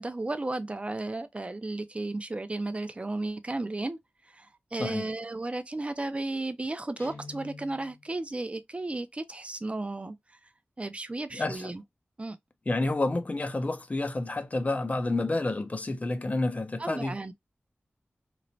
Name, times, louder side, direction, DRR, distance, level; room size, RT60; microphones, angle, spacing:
voice 1, 0.0-4.0 4.2-10.4 10.8-11.8 12.2-12.4 16.8-17.3, right 2 dB, 30° right, 0.4 m, -34 dB
Guitar, 7.0-8.1, left 3 dB, 65° left, 1.2 m, -46 dB
voice 2, 11.3-11.7 12.7-17.2, left 2 dB, 35° left, 0.5 m, -29 dB
3.0 x 2.1 x 2.6 m
wide cardioid pair, 85°, 4 cm